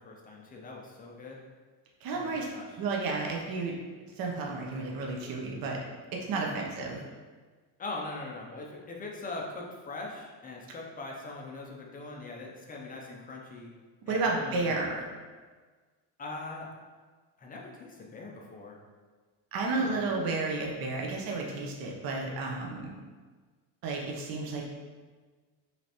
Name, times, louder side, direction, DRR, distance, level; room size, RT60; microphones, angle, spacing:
voice 1, 0.0-1.4 2.1-2.8 6.3-6.6 7.8-13.7 14.1-14.7 16.2-16.7 17.4-18.8 19.7-20.0, left 2 dB, 20° left, -1 dB, 0.4 m, -41 dB
voice 2, 2.0-2.5 2.8-3.7 4.2-5.8 6.1-7.0 14.1-15.0 19.5-22.9 23.8-24.7, right 3 dB, 45° right, -1 dB, 0.8 m, -32 dB
5.0 x 3.3 x 2.9 m, 1.4 s
cardioid pair, 155°, 48 cm